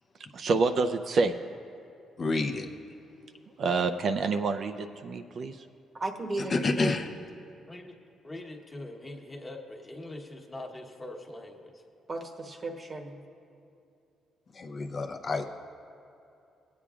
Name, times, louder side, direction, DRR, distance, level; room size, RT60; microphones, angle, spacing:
voice 1, 0.3-1.3 3.6-5.7, right 4 dB, 55° right, 8 dB, 0.4 m, -27 dB
voice 2, 2.2-2.7 6.5-7.1 14.5-15.4, left 3 dB, 45° left, 4 dB, 0.7 m, -29 dB
voice 3, 5.9-7.0 12.1-13.2, right 2 dB, 35° right, 4 dB, 1.0 m, -35 dB
voice 4, 7.7-8.0 8.2-11.8, left 1 dB, 20° left, 1 dB, 1.2 m, -43 dB
19.0 x 8.4 x 2.4 m, 2.7 s
cardioid pair, 90°, 0 cm